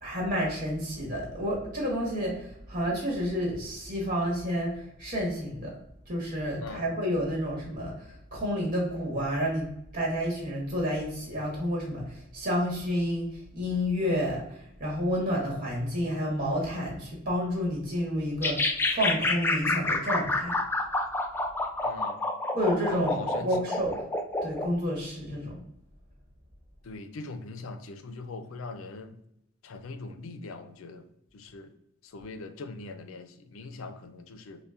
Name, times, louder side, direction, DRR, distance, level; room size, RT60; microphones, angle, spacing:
voice 1, 0.0-5.7 6.1-9.7 9.9-13.3 13.5-18.6 18.9-20.5 22.5-23.9 24.4-25.6, equal, 40° right, -3 dB, 1.2 m, -30 dB
sound 1, 18.4-24.7, left 2 dB, 10° left, 0.3 m, -28 dB
voice 2, 21.8-22.2 23.2-23.5 26.9-29.1 29.7-31.0 31.5-31.7 32.1-33.3 33.5-34.6, left 3 dB, 80° left, 8 dB, 0.5 m, -41 dB
5.4 x 2.2 x 2.4 m, 0.77 s
head